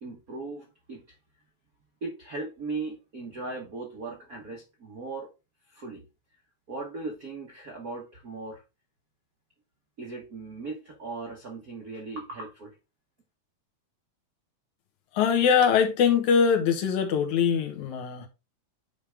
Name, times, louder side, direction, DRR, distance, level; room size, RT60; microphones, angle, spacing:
voice 1, 0.0-1.2 2.0-5.3 5.7-6.0 6.7-8.6 10.0-12.7, right 3 dB, 65° right, 0.9 m, -38 dB
voice 2, 15.1-18.3, left 7 dB, 80° left, 2.5 m, -22 dB
9.3 x 3.5 x 3.4 m
omnidirectional pair, 3.3 m